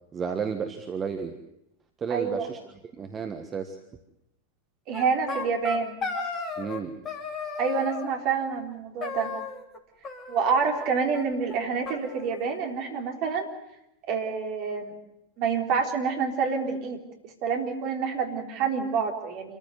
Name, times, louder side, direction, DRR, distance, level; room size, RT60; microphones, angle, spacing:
voice 1, 0.0-1.4 2.0-2.6 3.0-3.8 6.6-6.9, right 6 dB, 20° right, 7 dB, 1.5 m, -32 dB
voice 2, 2.1-2.5 4.9-6.0 7.6-9.3 10.3-13.5 14.1-14.9 15.4-17.0 17.4-19.6, right 5 dB, 40° right, 3 dB, 3.8 m, -27 dB
sound 1, 4.9-6.8 7.1-8.1 9.0-9.8 10.0-10.9 11.1-11.2 11.5-11.6 11.9-12.9, left 4 dB, 25° left, 3.4 m, -35 dB
27.0 x 14.5 x 9.6 m, 0.86 s
figure-of-eight pair, 90°, 0 cm